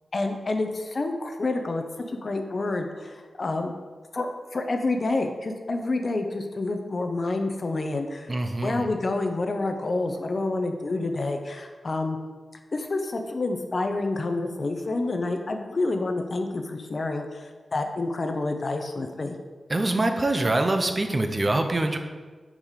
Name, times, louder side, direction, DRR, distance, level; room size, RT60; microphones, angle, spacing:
voice 1, 0.1-3.7 4.1-8.3 8.6-12.2 12.7-19.4, left 2 dB, 40° left, 5 dB, 0.6 m, -28 dB
voice 2, 8.3-8.9 19.7-22.0, right 2 dB, 25° right, 5 dB, 0.5 m, -24 dB
5.1 x 4.8 x 5.6 m, 1.4 s
wide cardioid pair, 160°, 0 cm